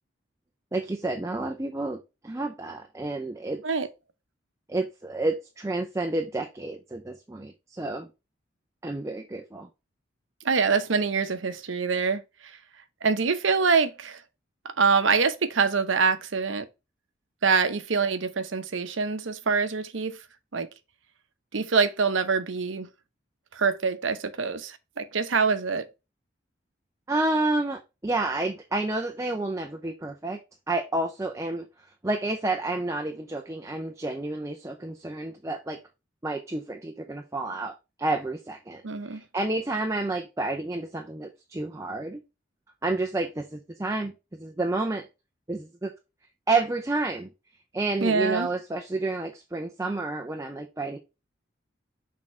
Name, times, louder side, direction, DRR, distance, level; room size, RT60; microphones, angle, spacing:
voice 1, 0.7-3.6 4.7-8.1 8.8-9.7 27.1-30.4 30.7-31.6 32.0-35.8 36.2-42.2 42.8-45.1 45.5-45.9 46.5-47.3 47.7-51.0, right 2 dB, 15° right, 0.5 m, -30 dB
voice 2, 10.4-12.6 13.0-14.2 14.6-16.7 17.4-20.2 20.5-20.7 21.5-22.9 23.5-25.8 38.8-39.2 48.0-48.5, right 5 dB, 85° right, 0.8 m, -25 dB
6.4 x 3.7 x 4.2 m
head